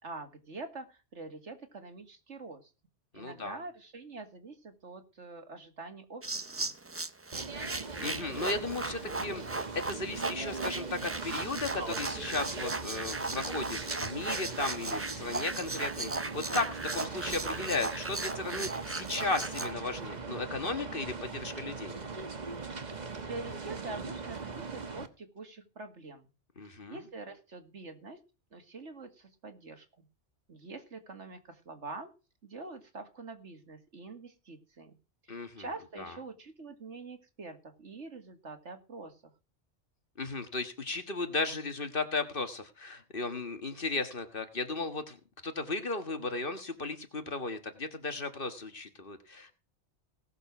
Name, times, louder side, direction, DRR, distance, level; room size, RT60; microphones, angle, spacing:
voice 1, 0.0-2.7 3.1-6.7 22.9-26.3 26.9-28.2 28.5-30.1 30.5-32.1 32.4-34.9 35.2-39.2, right 3 dB, 85° right, 7 dB, 2.4 m, -45 dB
voice 2, 3.1-3.6 8.0-22.0 26.6-27.0 35.3-35.7 36.0-36.2 40.2-45.2 45.4-49.5, left 3 dB, 50° left, 8 dB, 1.8 m, -35 dB
sound 1, 6.2-19.7, right 3 dB, 20° right, 0.4 m, -37 dB
sound 2, 7.3-25.1, right 4 dB, 40° right, 1.3 m, -40 dB
18.0 x 7.0 x 6.0 m, 0.31 s
omnidirectional pair, 1.2 m